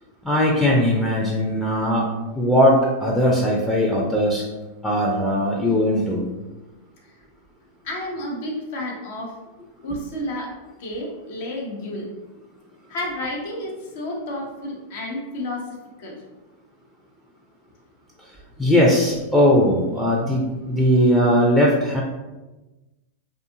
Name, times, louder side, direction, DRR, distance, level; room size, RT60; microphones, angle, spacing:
voice 1, 0.2-2.0 2.3-4.4 4.8-6.2 18.6-22.0, equal, 5° left, -3 dB, 0.5 m, -19 dB
voice 2, 7.8-9.4 9.8-12.1 12.9-16.2, left 1 dB, 60° left, -1 dB, 0.8 m, -31 dB
2.6 x 2.4 x 2.7 m, 1.1 s
hypercardioid pair, 95°, 0 cm